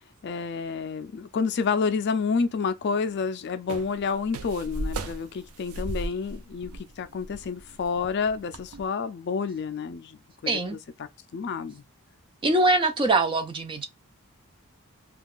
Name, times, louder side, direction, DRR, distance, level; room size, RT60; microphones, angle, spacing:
voice 1, 0.2-11.8, left 5 dB, 50° left, 0.4 m, -29 dB
sound 1, 3.7-8.8, right 1 dB, 80° right, 0.5 m, -36 dB
voice 2, 10.5-10.8 12.4-13.9, right 2 dB, 25° right, 0.4 m, -23 dB
2.3 x 2.3 x 3.5 m
head